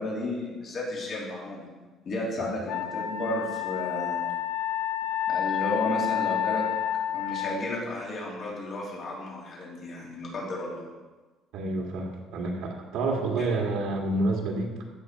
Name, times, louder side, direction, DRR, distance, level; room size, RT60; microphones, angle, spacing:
voice 1, 0.0-1.7 2.0-4.3 5.3-6.6 7.1-10.9 13.4-13.5, left 2 dB, 40° left, -4 dB, 3.3 m, -33 dB
Wind instrument woodwind instrument, 2.7-7.6, left 11 dB, 75° left, 0.7 m, -29 dB
voice 2, 11.5-14.7, right 2 dB, 65° right, 0 dB, 1.9 m, -28 dB
15.0 x 6.3 x 4.6 m, 1.3 s
cardioid pair, 155°, 0 cm